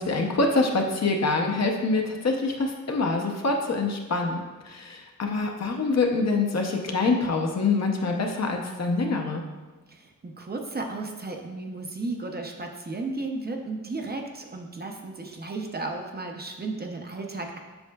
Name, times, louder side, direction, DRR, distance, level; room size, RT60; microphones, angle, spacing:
voice 1, 0.0-4.4 4.6-9.4, left 3 dB, 55° left, 2 dB, 0.8 m, -25 dB
voice 2, 9.9-17.6, right 3 dB, 30° right, 2 dB, 0.6 m, -34 dB
7.9 x 5.4 x 2.3 m, 1.3 s
wide cardioid pair, 125°, 32 cm